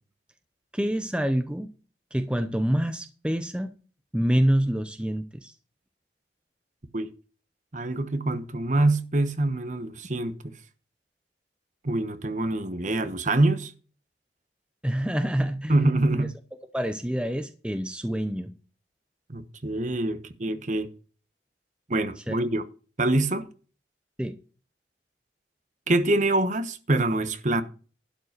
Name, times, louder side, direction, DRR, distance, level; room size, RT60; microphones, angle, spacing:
voice 1, 0.7-1.7 2.1-3.7 4.1-5.5 14.8-15.7 16.7-18.5 22.3-22.4 24.2-24.4, equal, 5° right, 0.7 m, -26 dB
voice 2, 7.7-10.5 11.8-13.7 15.7-16.3 19.3-20.9 21.9-22.6 23.0-23.5 25.9-27.6, right 2 dB, 45° right, 1.1 m, -25 dB
12.0 x 5.2 x 6.8 m
head